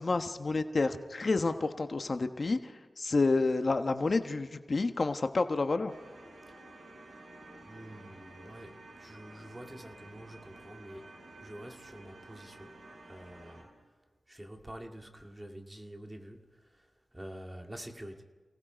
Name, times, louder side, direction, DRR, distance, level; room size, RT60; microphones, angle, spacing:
voice 1, 0.0-5.9, left 3 dB, 55° left, 8 dB, 1.1 m, -29 dB
sound 1, 5.9-13.6, right 2 dB, 80° right, 6.7 m, -52 dB
voice 2, 7.7-11.1 11.4-12.8 13.1-13.7 14.3-18.2, right 1 dB, 15° right, 4 dB, 2.2 m, -47 dB
28.5 x 18.0 x 5.1 m, 1.4 s
wide cardioid pair, 75°, 0 cm